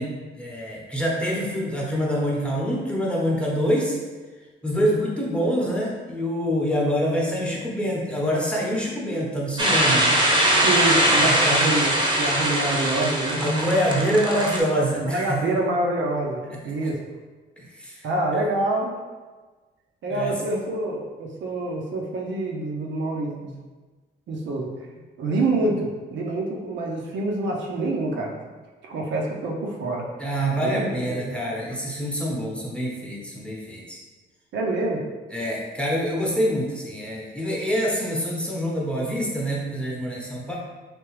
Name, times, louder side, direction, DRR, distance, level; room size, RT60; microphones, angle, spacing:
voice 1, 0.0-4.0 4.6-10.2 11.2-11.7 13.4-15.4 16.6-16.9 17.6-18.1 18.3-18.4 20.1-20.4 30.2-34.0 35.3-40.6, equal, 5° left, -4 dB, 0.9 m, -26 dB
sound 1, 9.6-14.6, right 1 dB, 20° right, 0.8 m, -21 dB
voice 2, 10.6-13.5 14.9-17.0 18.0-18.9 20.0-23.5 24.3-24.7 25.2-28.3 28.8-30.1 30.5-31.3 34.5-35.0, right 2 dB, 65° right, -1 dB, 0.7 m, -26 dB
3.4 x 2.8 x 3.1 m, 1.3 s
cardioid pair, 90°, 20 cm